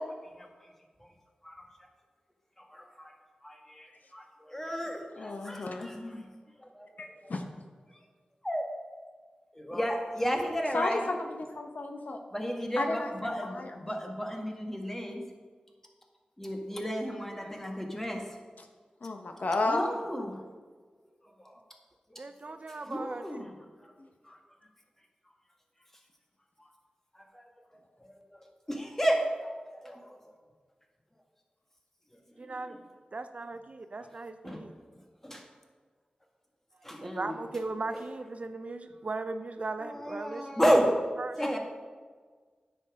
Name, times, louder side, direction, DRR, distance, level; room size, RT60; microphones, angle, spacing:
voice 1, 2.6-3.1 3.4-6.2 6.6-7.3 8.4-8.7 9.5-11.0 12.3-15.2 16.4-18.2 19.7-20.4 21.4-21.6 22.1-22.2 22.5-22.6 22.9-23.5 23.8-23.9 24.2-24.4 26.6-26.7 27.1-27.4 28.0-30.3 32.4-32.5 34.4-34.6 35.2-35.4 36.8-37.4 39.8-41.0 41.4-41.6, equal, 15° left, 2 dB, 1.6 m, -33 dB
voice 2, 5.2-5.9 7.0-7.4 10.7-12.2 12.8-13.9 18.6-18.7 19.0-20.0 24.0-24.1, left 2 dB, 70° left, 4 dB, 1.0 m, -33 dB
voice 3, 22.2-23.5 32.4-32.8 33.1-34.7 37.0-40.8 41.2-41.4, right 3 dB, 55° right, 9 dB, 0.6 m, -38 dB
9.8 x 7.2 x 4.9 m, 1.5 s
wide cardioid pair, 65°, 3 cm